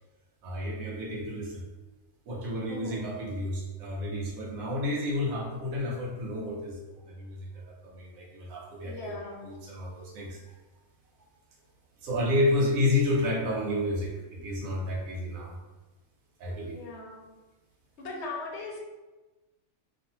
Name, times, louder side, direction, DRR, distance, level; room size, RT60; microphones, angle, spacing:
voice 1, 0.4-1.6 2.3-10.4 12.0-15.5 16.4-16.8, left 1 dB, 70° right, -4 dB, 1.1 m, -31 dB
voice 2, 2.7-3.1 8.8-9.5 16.7-17.3 18.0-18.8, left 3 dB, 65° left, -1 dB, 0.7 m, -39 dB
2.6 x 2.4 x 2.8 m, 1.1 s
omnidirectional pair, 1.6 m